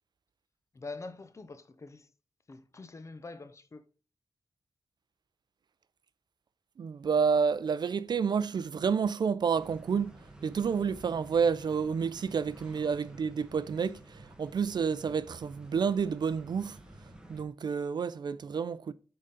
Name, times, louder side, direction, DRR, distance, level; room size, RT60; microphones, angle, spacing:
voice 1, 0.7-2.1 2.5-3.8, left 3 dB, 35° left, 0.7 m, -45 dB
voice 2, 6.8-10.1 10.4-16.8 17.3-18.9, right 6 dB, 55° right, 0.4 m, -29 dB
sound 1, 9.5-17.4, right 1 dB, 10° right, 1.1 m, -51 dB
8.3 x 3.8 x 3.8 m
wide cardioid pair, 120°, 9 cm